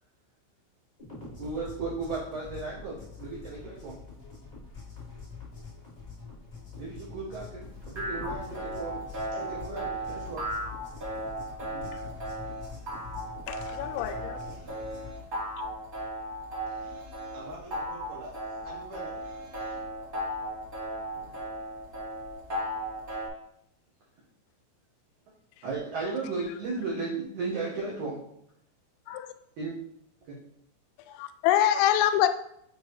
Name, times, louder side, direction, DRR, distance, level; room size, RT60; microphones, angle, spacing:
sound 1, 1.0-15.1, left 4 dB, 40° left, 0.8 m, -45 dB
voice 1, 1.4-4.0 6.8-9.0 9.5-10.5 11.7-11.8 21.2-21.4 25.6-28.2 29.6-29.7 30.3-30.4, right 3 dB, 85° right, -6 dB, 1.7 m, -35 dB
sound 2, 7.6-23.3, right 1 dB, 20° right, 1.2 m, -36 dB
voice 2, 9.3-10.3 12.3-13.0 14.3-15.3 16.7-19.8, right 1 dB, 60° right, -5 dB, 2.9 m, -47 dB
voice 3, 13.5-14.4 29.1-29.3 31.1-32.3, left 11 dB, 90° left, 9 dB, 3.1 m, -25 dB
7.4 x 5.1 x 3.1 m, 0.73 s
omnidirectional pair, 5.7 m